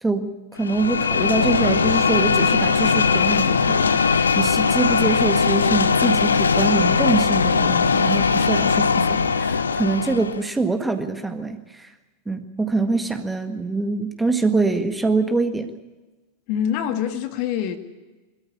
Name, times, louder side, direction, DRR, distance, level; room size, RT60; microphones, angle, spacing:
voice 1, 0.0-11.9 12.3-15.7, right 3 dB, 10° right, 7 dB, 1.7 m, -24 dB
sound 1, 0.6-10.4, left 5 dB, 75° left, 0.9 m, -20 dB
voice 2, 16.5-17.8, left 9 dB, 45° left, 8 dB, 1.8 m, -25 dB
23.0 x 14.0 x 9.8 m, 1.2 s
figure-of-eight pair, 90°, 0 cm